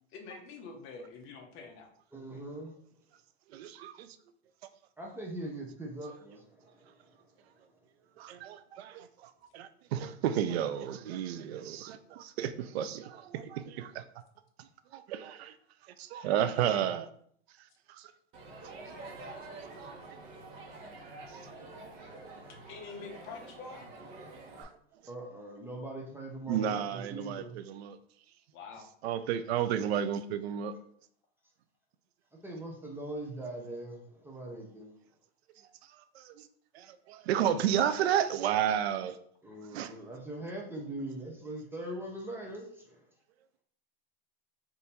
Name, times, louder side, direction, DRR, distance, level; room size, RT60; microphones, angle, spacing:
voice 1, 0.1-1.9 22.7-23.9 28.5-28.9, left 4 dB, 40° left, 4 dB, 0.9 m, -46 dB
voice 2, 2.1-2.7 5.0-7.2 7.5-7.6 25.1-27.6 32.4-34.9 39.4-43.1, right 1 dB, 5° right, -1 dB, 0.7 m, -41 dB
voice 3, 3.5-4.2 8.2-14.0 14.6-15.6 15.8-17.1 17.6-18.1 18.6-18.7 19.5-19.7 20.1-20.2 21.3-21.5 24.6-24.7 26.5-28.0 29.0-30.7 35.6-36.5 36.7-39.2 39.7-39.9, right 9 dB, 80° right, 11 dB, 0.5 m, -32 dB
Crowd, 18.3-24.6, right 2 dB, 40° right, 1.1 m, -47 dB
3.6 x 2.7 x 4.2 m, 0.63 s
supercardioid pair, 130°, 31 cm